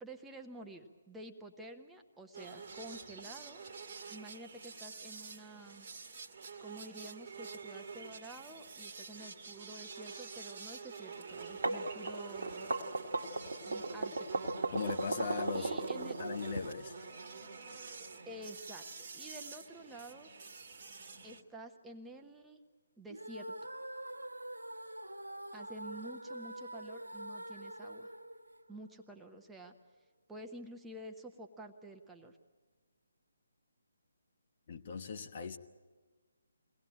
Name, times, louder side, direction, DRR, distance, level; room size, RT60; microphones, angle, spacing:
voice 1, 0.0-3.6 4.1-5.9 6.6-12.7 13.6-14.4 15.5-16.2 18.3-18.8 19.1-20.3 21.2-22.6 23.0-23.5 25.5-28.1 28.7-29.7 30.3-32.4, right 1 dB, 5° right, 3 dB, 1.0 m, -50 dB
sound 1, 2.3-21.4, right 4 dB, 40° right, 1.5 m, -47 dB
sound 2, 11.4-16.6, right 2 dB, 60° right, 1.4 m, -36 dB
voice 2, 14.7-15.7 16.2-16.9 34.7-35.6, left 5 dB, 40° left, 5 dB, 1.1 m, -38 dB
sound 3, 23.1-29.2, right 1 dB, 75° right, 1.3 m, -45 dB
22.5 x 18.0 x 8.9 m, 1.4 s
figure-of-eight pair, 145°, 0 cm